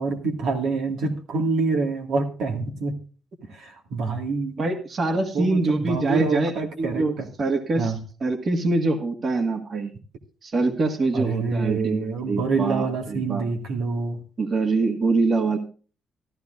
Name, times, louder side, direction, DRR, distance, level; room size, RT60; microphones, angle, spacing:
voice 1, 0.0-3.0 3.5-4.6 5.3-7.3 7.8-8.0 11.1-14.2, right 4 dB, 85° right, 2 dB, 2.1 m, -26 dB
voice 2, 4.6-6.5 6.8-7.9 8.2-9.9 10.4-13.4 14.4-15.6, right 3 dB, 45° right, 5 dB, 1.8 m, -24 dB
14.5 x 13.0 x 2.6 m, 0.38 s
cardioid pair, 90°, 0 cm